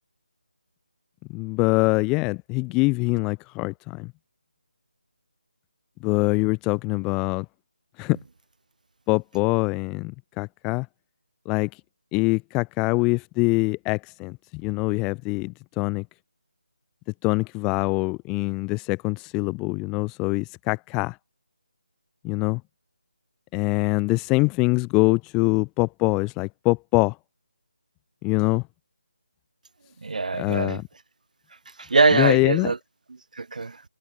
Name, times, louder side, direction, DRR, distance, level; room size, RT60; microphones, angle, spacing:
voice 1, 1.3-4.1 6.0-7.5 8.0-8.2 9.1-10.9 11.5-11.7 12.1-16.1 17.2-21.2 22.2-22.6 23.5-27.2 28.2-28.6 30.4-30.8 32.1-32.7, left 26 dB, 10° left, 0.3 m, -24 dB
voice 2, 30.0-30.8 31.8-32.8 33.1-33.8, right 3 dB, 55° right, 2.0 m, -23 dB
figure-of-eight pair, 155°, 5 cm